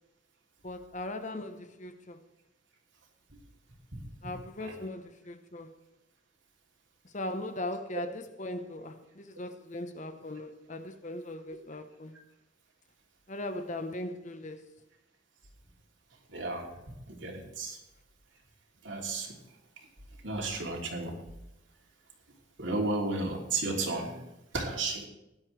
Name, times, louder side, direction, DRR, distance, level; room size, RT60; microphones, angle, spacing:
voice 1, 0.6-2.2 4.2-5.7 7.1-12.2 13.3-14.7, left 1 dB, 40° left, 1.1 m, -39 dB
voice 2, 16.3-16.7 17.1-17.8 18.8-19.3 20.2-21.1 22.6-24.1 24.5-25.1, right 3 dB, 70° right, 3.1 m, -33 dB
17.0 x 11.0 x 3.4 m
head